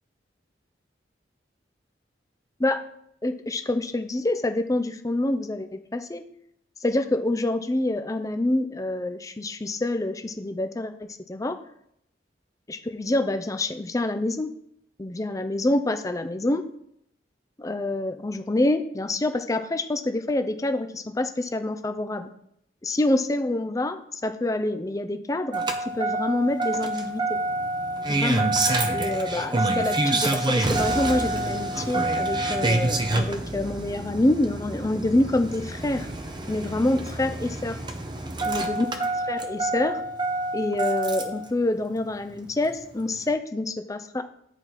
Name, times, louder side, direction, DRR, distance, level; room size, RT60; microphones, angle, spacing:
voice 1, 3.2-5.7 5.9-6.2 6.8-11.6 12.7-14.5 15.0-16.6 17.6-22.3 22.8-27.4 28.1-28.5 28.9-36.1 36.5-37.8 38.4-40.0 40.5-44.2, left 2 dB, 20° left, 8 dB, 0.5 m, -26 dB
Engine starting, 25.5-41.5 42.7-42.8, right 2 dB, 25° right, 0.7 m, -27 dB
8.8 x 4.6 x 4.1 m, 0.73 s
head